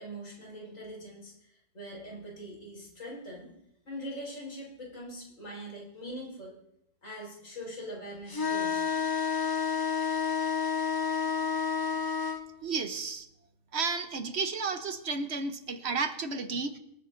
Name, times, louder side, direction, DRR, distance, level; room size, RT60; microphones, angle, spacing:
voice 1, 0.0-3.5 3.8-6.5 7.0-8.8, equal, 80° left, -3 dB, 4.7 m, -42 dB
sound 1, 8.3-12.4, left 6 dB, 20° left, 0.6 m, -29 dB
voice 2, 12.6-13.3 13.7-16.8, right 4 dB, 55° right, 8 dB, 1.1 m, -32 dB
25.0 x 9.4 x 2.5 m, 0.78 s
omnidirectional pair, 1.4 m